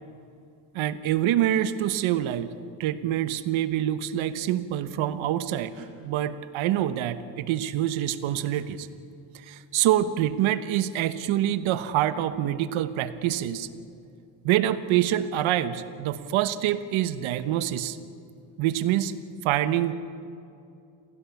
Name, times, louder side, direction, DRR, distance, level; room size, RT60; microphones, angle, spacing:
voice 1, 0.7-2.5 2.8-5.7 6.0-8.9 9.3-13.7 14.4-18.0 18.6-19.1 19.4-19.9, right 12 dB, 90° right, 13 dB, 1.2 m, -26 dB
sound 1, 5.7-5.9 8.5-8.7 10.4-10.6 12.4-12.8, right 10 dB, 65° right, 2.6 m, -51 dB
27.5 x 17.0 x 7.1 m, 2.5 s
cardioid pair, 80°, 47 cm